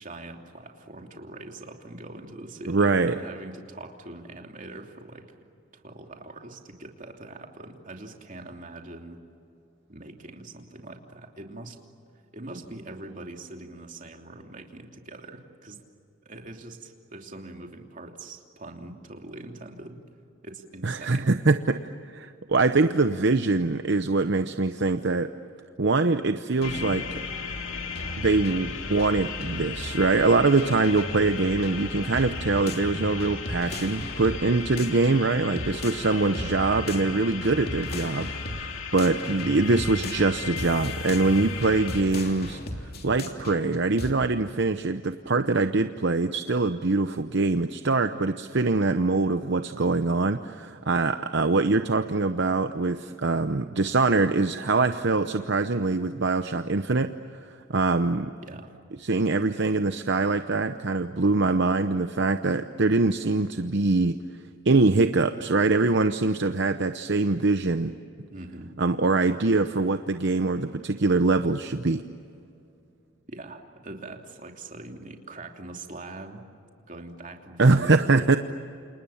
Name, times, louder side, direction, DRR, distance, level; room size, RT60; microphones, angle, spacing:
voice 1, 0.0-5.3 5.7-9.2 9.9-11.8 12.3-15.8 16.2-20.0 20.4-21.4 35.5-36.7 58.4-58.9 68.3-68.8 73.3-76.4 76.9-78.4, right 2 dB, 40° right, 2 dB, 3.0 m, -42 dB
voice 2, 2.7-3.2 20.8-25.3 25.8-27.2 28.2-42.6 43.0-57.1 57.7-58.3 59.0-64.2 64.6-67.9 68.8-72.0 77.6-78.4, right 3 dB, 60° right, 9 dB, 0.8 m, -23 dB
sound 1, 26.6-42.0, left 6 dB, 80° left, 2.4 m, -36 dB
sound 2, 26.6-26.9 27.9-30.0 30.6-36.1 36.3-38.7 39.0-44.1, left 1 dB, 50° left, 3.0 m, -36 dB
29.5 x 28.5 x 7.2 m, 2.5 s
head